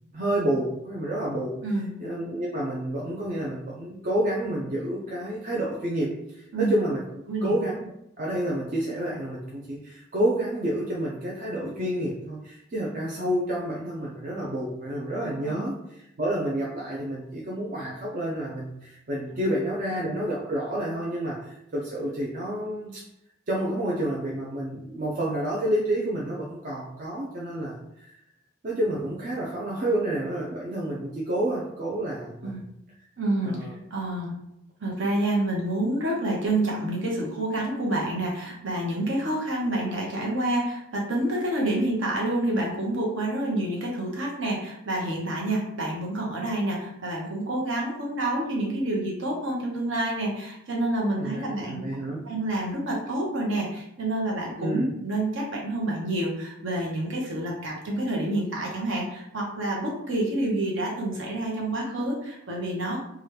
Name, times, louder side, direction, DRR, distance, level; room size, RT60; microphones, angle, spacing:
voice 1, 0.1-1.5 2.0-7.0 7.4-7.9 8.2-23.0 23.5-28.1 28.6-32.6 33.4-33.7 51.2-52.2 54.6-54.8, right 1 dB, 40° right, -4 dB, 0.5 m, -29 dB
voice 2, 1.6-1.9 6.5-6.7 7.3-7.5 15.4-15.7 32.4-32.6 33.2-33.6 33.9-34.4 34.8-51.9 52.3-63.0, right 1 dB, 70° right, -2 dB, 0.9 m, -28 dB
2.9 x 2.3 x 3.2 m, 0.80 s
head